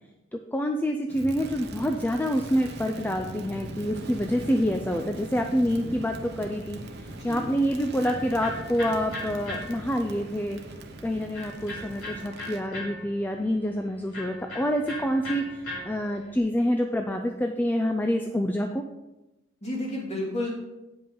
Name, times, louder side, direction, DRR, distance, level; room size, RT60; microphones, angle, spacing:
voice 1, 0.3-10.6 11.0-18.8, equal, 10° left, 4 dB, 0.4 m, -27 dB
Crackle, 1.1-12.7, right 1 dB, 50° right, 0.9 m, -40 dB
voice 2, 7.0-7.5 19.6-20.5, left 1 dB, 30° left, -3 dB, 2.6 m, -32 dB
Electric guitar, 7.3-16.4, left 1 dB, 85° left, 3.0 m, -40 dB
9.0 x 5.4 x 5.5 m, 1.0 s
head